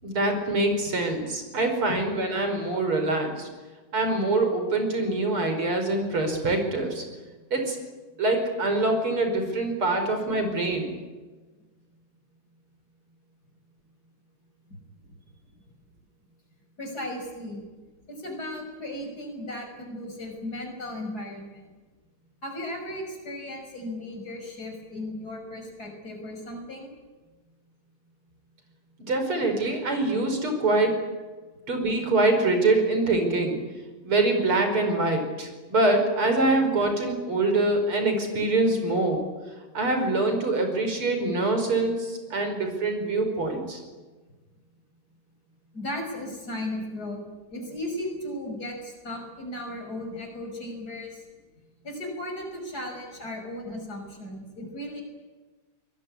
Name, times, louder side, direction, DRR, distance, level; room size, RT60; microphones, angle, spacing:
voice 1, 0.0-3.5 3.9-7.0 7.5-7.8 8.2-10.9 29.0-31.0 31.7-33.6 34.0-39.2 39.7-43.8, right 2 dB, 75° right, 5 dB, 6.0 m, -24 dB
voice 2, 16.8-17.7 18.1-21.7 22.4-26.9 45.7-47.2 47.5-51.2 51.8-55.0, left 1 dB, 45° left, 3 dB, 6.6 m, -36 dB
24.0 x 21.5 x 9.8 m, 1.3 s
omnidirectional pair, 2.4 m